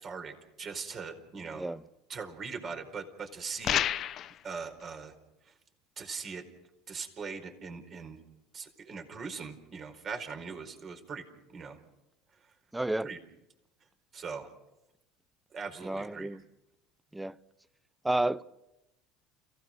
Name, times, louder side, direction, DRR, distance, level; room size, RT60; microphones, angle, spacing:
voice 1, 0.0-1.7 2.1-3.8 4.4-5.1 5.4-5.5 6.0-6.4 6.9-8.2 8.5-11.3 11.5-11.8 12.3-12.5 13.0-13.2 14.1-14.5 15.5-16.4, right 5 dB, 40° right, 4.7 m, -40 dB
sound 1, 3.6-4.4, left 11 dB, 50° left, 0.9 m, -29 dB
voice 2, 12.7-13.1 15.8-16.4 17.1-17.4 18.0-18.4, right 1 dB, 10° right, 0.7 m, -30 dB
30.0 x 17.0 x 6.5 m
hypercardioid pair, 75°, 0 cm